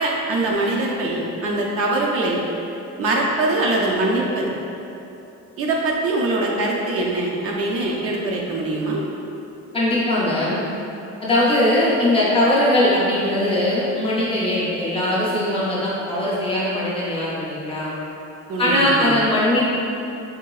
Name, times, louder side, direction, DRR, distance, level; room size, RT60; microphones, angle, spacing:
voice 1, 0.0-2.4 3.0-4.5 5.6-9.0 18.5-19.2, right 2 dB, 50° right, -2 dB, 0.4 m, -22 dB
voice 2, 9.7-10.6 11.2-17.9 18.6-19.7, left 1 dB, 20° left, -7 dB, 0.4 m, -20 dB
3.8 x 3.2 x 2.3 m, 2.8 s
cardioid pair, 180°, 30 cm